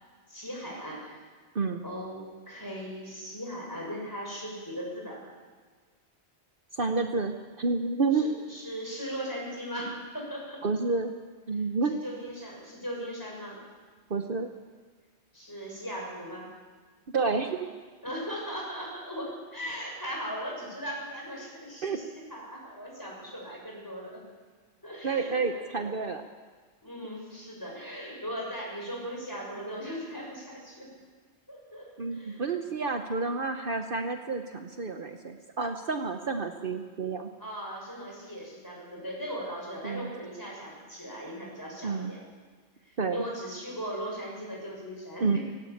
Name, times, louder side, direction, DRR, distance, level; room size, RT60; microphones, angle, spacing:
voice 1, 0.3-1.2 1.8-5.2 8.1-10.6 11.9-13.6 15.3-16.5 18.0-24.2 24.8-25.9 26.8-30.9 31.5-32.4 37.4-42.2 42.9-45.4, equal, 20° left, -3 dB, 6.5 m, -38 dB
voice 2, 6.7-8.3 10.6-11.1 11.5-12.0 14.1-14.5 17.1-17.7 21.8-22.0 25.0-26.2 32.0-37.3 39.8-40.1 41.8-42.1 43.0-43.2 45.2-45.4, right 4 dB, 55° right, 5 dB, 1.1 m, -29 dB
17.5 x 17.0 x 8.7 m, 1.5 s
omnidirectional pair, 1.1 m